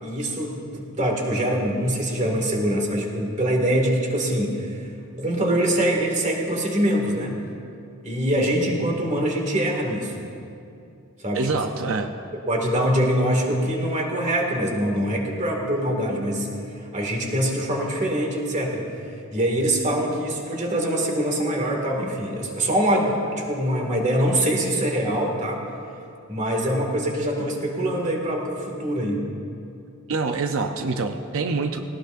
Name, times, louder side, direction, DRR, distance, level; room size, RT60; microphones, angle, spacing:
voice 1, 0.0-4.8 5.1-7.4 8.0-10.3 11.2-11.4 12.5-16.5 16.9-18.8 19.3-25.6 26.3-29.2, right 1 dB, 35° right, 0 dB, 2.2 m, -24 dB
voice 2, 11.3-12.1 30.1-31.8, right 4 dB, 65° right, 5 dB, 0.7 m, -25 dB
18.0 x 18.0 x 2.6 m, 2.6 s
head